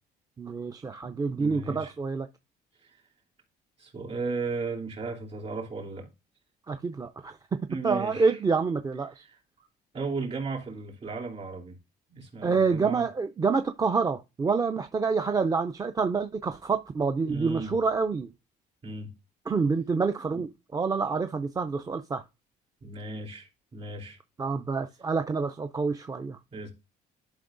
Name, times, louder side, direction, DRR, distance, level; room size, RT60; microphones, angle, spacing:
voice 1, 0.4-2.3 6.7-7.4 7.8-9.2 12.4-18.3 19.5-22.2 24.4-26.4, right 4 dB, 20° right, 0.5 m, -27 dB
voice 2, 1.0-1.9 2.8-3.0 3.8-6.1 7.7-8.4 9.2-9.4 9.9-11.8 12.1-13.1 17.2-17.7 18.8-19.1 20.3-20.4 22.8-24.2 26.5-26.7, right 3 dB, 35° right, 3.0 m, -36 dB
11.5 x 5.4 x 2.5 m
cardioid pair, 110°, 17 cm